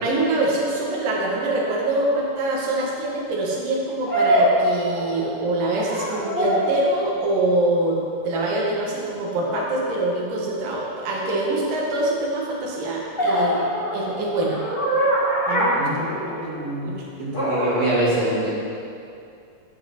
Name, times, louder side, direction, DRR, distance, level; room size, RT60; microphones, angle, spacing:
voice 1, 0.0-14.6 15.5-16.1 16.8-17.0, right 2 dB, 80° right, -3 dB, 3.2 m, -24 dB
Dog talking or howling, 1.7-1.8 4.1-5.4 5.7-6.8 9.5-9.7 13.2-16.6 17.3-17.9, equal, 20° left, 1.5 m, -23 dB
voice 2, 15.8-18.5, right 1 dB, 55° right, -7 dB, 3.5 m, -26 dB
12.5 x 5.4 x 5.9 m, 2.5 s
omnidirectional pair, 3.7 m